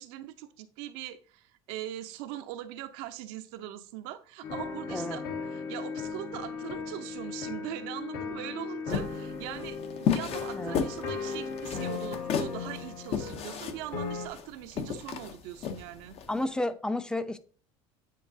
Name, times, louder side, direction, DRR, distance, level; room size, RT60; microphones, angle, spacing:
voice 1, 0.0-5.2 5.5-9.8 10.1-16.2, right 13 dB, 80° right, 0.6 m, -41 dB
sound 1, 4.4-14.3, left 5 dB, 75° left, 1.6 m, -37 dB
sound 2, 8.9-16.3, left 7 dB, 50° left, 0.7 m, -33 dB
voice 2, 10.5-10.9 16.3-17.4, left 1 dB, 5° left, 0.5 m, -31 dB
9.2 x 4.6 x 2.7 m
supercardioid pair, 110°, 13 cm